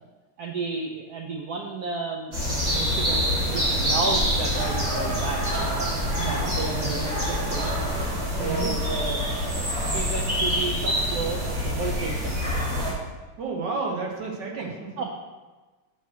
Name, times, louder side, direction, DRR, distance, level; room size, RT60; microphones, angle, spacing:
voice 1, 0.4-5.8 6.1-7.7 8.4-12.5 14.6-14.7 15.0-15.1, right 3 dB, 75° right, 1 dB, 0.9 m, -33 dB
sound 1, 2.3-12.9, equal, 40° right, 2.3 m, -26 dB
sound 2, 2.6-8.1, left 1 dB, 20° right, 2.6 m, -34 dB
voice 2, 6.2-7.0 8.3-8.8 13.4-14.9, right 4 dB, 60° right, 0 dB, 1.7 m, -32 dB
7.1 x 4.4 x 6.2 m, 1.3 s
omnidirectional pair, 2.4 m